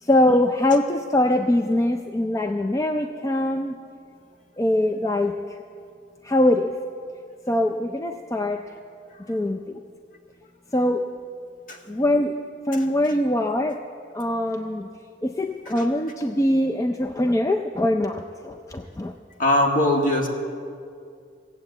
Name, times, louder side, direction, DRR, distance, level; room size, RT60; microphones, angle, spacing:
voice 1, 0.0-3.8 4.6-5.3 6.2-6.7 7.5-8.6 9.3-9.8 10.7-11.1 11.9-12.4 12.7-13.8 14.1-14.9 15.2-19.1, left 1 dB, 15° left, 4 dB, 0.4 m, -22 dB
voice 2, 19.4-20.3, left 1 dB, 45° left, 1 dB, 1.8 m, -20 dB
16.5 x 8.3 x 8.0 m, 2.3 s
head